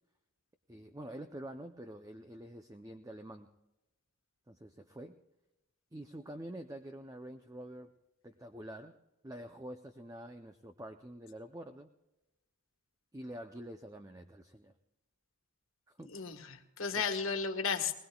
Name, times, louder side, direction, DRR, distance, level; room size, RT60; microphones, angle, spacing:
voice 1, 0.7-3.5 4.5-5.2 5.9-7.9 8.2-9.0 9.2-11.9 13.1-14.7 16.0-16.2 16.9-17.0, right 1 dB, 15° right, 7 dB, 0.6 m, -47 dB
voice 2, 16.1-18.0, left 5 dB, 65° left, 6 dB, 1.6 m, -34 dB
21.0 x 20.5 x 2.3 m, 0.96 s
head